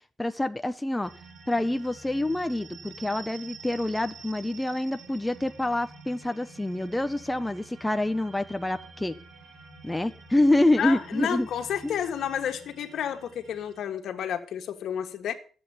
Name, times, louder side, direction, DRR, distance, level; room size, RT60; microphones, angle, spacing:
voice 1, 0.2-1.1 1.5-9.2 9.8-11.5 11.8-12.0, left 1 dB, 10° left, 0.6 m, -27 dB
sound 1, 1.0-13.8, right 4 dB, 70° right, 3.6 m, -48 dB
voice 2, 10.8-15.3, left 9 dB, 75° left, 1.7 m, -31 dB
13.5 x 8.0 x 7.3 m
wide cardioid pair, 155°, 0 cm